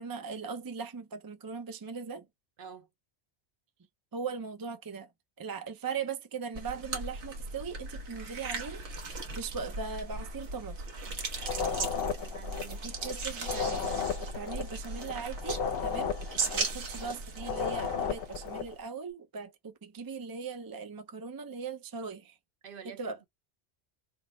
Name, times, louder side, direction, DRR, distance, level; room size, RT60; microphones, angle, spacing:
voice 1, 0.0-2.3 4.1-5.1 5.4-10.8 12.7-22.4 22.8-23.2, right 5 dB, 30° right, 0.4 m, -39 dB
voice 2, 2.6-2.9 11.5-12.9 16.6-16.7 22.6-23.3, right 7 dB, 60° right, 0.8 m, -49 dB
sound 1, 6.6-18.8, right 3 dB, 90° right, 1.3 m, -38 dB
sound 2, 11.4-13.1 13.4-17.1 17.4-18.7, left 6 dB, 60° left, 0.8 m, -34 dB
3.6 x 2.0 x 4.2 m
omnidirectional pair, 1.1 m